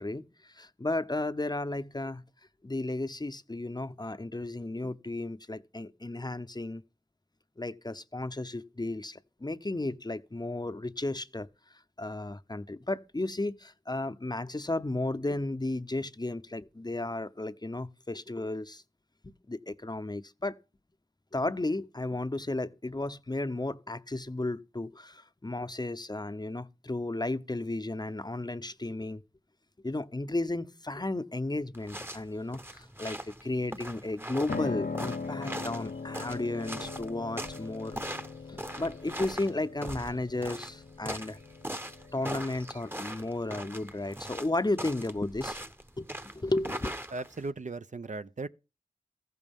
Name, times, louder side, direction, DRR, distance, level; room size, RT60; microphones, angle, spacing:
voice 1, 0.0-2.2 2.6-6.8 7.6-11.5 12.0-18.8 19.5-20.6 21.3-29.2 29.8-38.0 38.5-41.4 42.1-45.6 46.0-46.9, left 2 dB, 30° left, 0.7 m, -34 dB
sound 1, 31.7-47.5, right 1 dB, 15° right, 0.9 m, -41 dB
Piano, 34.5-44.4, left 4 dB, 75° left, 0.7 m, -41 dB
voice 2, 47.1-48.5, right 3 dB, 55° right, 0.5 m, -37 dB
14.5 x 12.5 x 3.6 m
wide cardioid pair, 55°, 15 cm